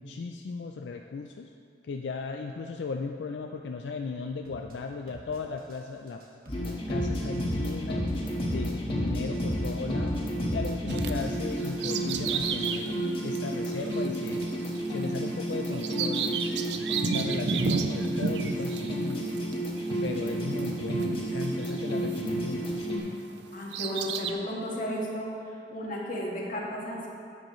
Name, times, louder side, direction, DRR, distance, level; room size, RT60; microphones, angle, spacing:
voice 1, 0.0-1.5 1.8-6.2 6.6-8.1 8.4-10.2 10.5-12.9 13.2-14.5 14.9-16.3 17.1-19.2 20.0-23.2, left 4 dB, 80° left, 4 dB, 0.4 m, -36 dB
sound 1, 4.4-4.7 5.1-5.8 6.1-6.7 7.1-7.8 8.1-8.7 9.1-9.8 10.1-10.7 11.1-12.4, right 1 dB, 55° right, 1.4 m, -48 dB
sound 2, 6.5-23.0, equal, 30° left, 1.5 m, -31 dB
Bird vocalization bird call bird song, 10.9-23.0 23.4-24.3, right 5 dB, 75° right, 0.5 m, -34 dB
voice 2, 23.5-25.3 25.7-27.1, equal, 50° left, -3 dB, 1.6 m, -33 dB
11.0 x 7.8 x 3.1 m, 2.4 s
head